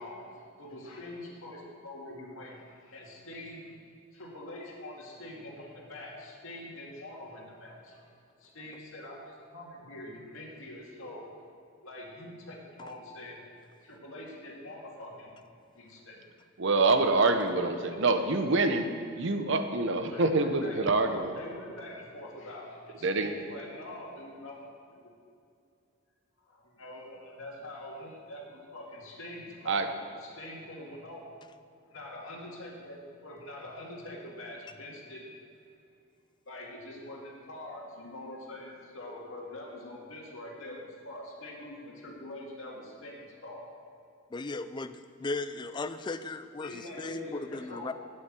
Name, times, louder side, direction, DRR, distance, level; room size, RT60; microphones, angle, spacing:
voice 1, 0.0-3.8 4.1-8.1 8.4-11.3 11.8-15.3 15.7-16.3 17.6-18.6 20.0-24.7 25.0-25.1 26.4-31.3 31.9-35.3 36.5-43.7 46.6-47.9, left 1 dB, 65° left, -2 dB, 2.2 m, -44 dB
voice 2, 16.6-21.3 23.0-23.3 29.7-29.9, right 3 dB, 60° right, 7 dB, 0.8 m, -26 dB
voice 3, 44.3-47.9, left 3 dB, 20° left, 11 dB, 0.3 m, -36 dB
8.7 x 8.0 x 7.5 m, 2.5 s
head